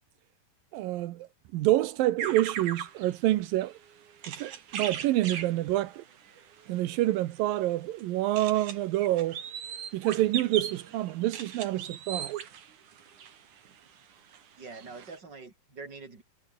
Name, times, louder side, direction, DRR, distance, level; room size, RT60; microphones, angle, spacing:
voice 1, 0.7-1.3 1.5-3.8 4.3-6.0 6.7-9.4 9.9-12.5, right 15 dB, 85° right, 2.7 m, -27 dB
sound 1, 2.2-13.9 14.3-14.4 14.7-15.2, right 8 dB, 60° right, 3.8 m, -40 dB
voice 2, 14.6-16.2, right 4 dB, 30° right, 5.0 m, -44 dB
omnidirectional pair, 4.1 m